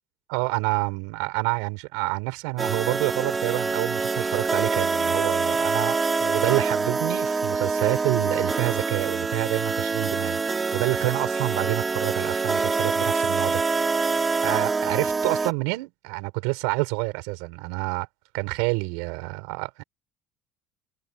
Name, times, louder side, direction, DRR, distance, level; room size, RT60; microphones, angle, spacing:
voice 1, 0.3-13.6 14.4-18.1 18.3-19.8, right 30 dB, 90° right, 6.4 m, -28 dB
sound 1, 2.6-15.5, right 4 dB, 15° right, 3.2 m, -25 dB
cardioid pair, 170°, 0 cm